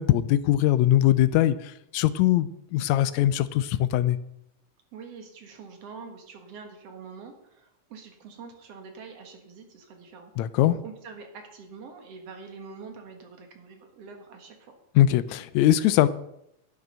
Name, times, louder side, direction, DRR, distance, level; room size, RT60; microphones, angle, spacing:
voice 1, 0.0-4.2 10.4-10.8 15.0-16.1, left 13 dB, 80° left, 15 dB, 1.8 m, -21 dB
voice 2, 4.9-10.3 10.8-14.7, right 5 dB, 60° right, 5 dB, 2.4 m, -45 dB
11.0 x 9.2 x 5.5 m, 0.79 s
omnidirectional pair, 3.4 m